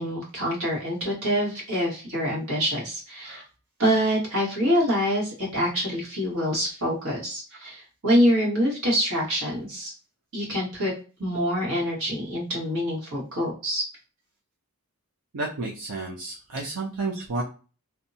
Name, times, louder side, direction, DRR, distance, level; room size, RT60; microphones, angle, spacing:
voice 1, 0.0-3.4 3.8-9.9 10.3-10.9 11.2-13.8, equal, 65° right, -4 dB, 1.4 m, -25 dB
voice 2, 15.3-17.4, right 3 dB, 90° right, -2 dB, 0.6 m, -31 dB
2.7 x 2.2 x 2.6 m, 0.35 s
head